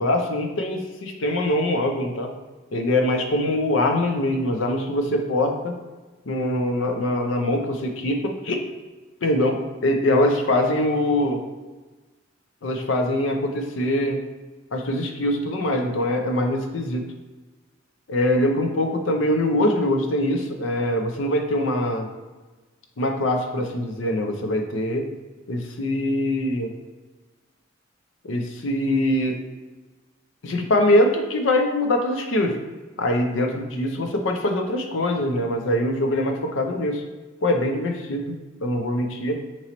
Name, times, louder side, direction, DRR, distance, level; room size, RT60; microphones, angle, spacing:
voice 1, 0.0-2.3 2.7-5.7 6.3-8.6 9.2-11.4 12.6-14.2 14.7-17.0 18.1-22.1 23.0-25.1 25.5-26.7 28.2-29.4 30.4-32.5 33.0-37.0 37.4-39.4, left 1 dB, 70° left, 4 dB, 0.5 m, -23 dB
3.9 x 3.0 x 2.9 m, 1.2 s
head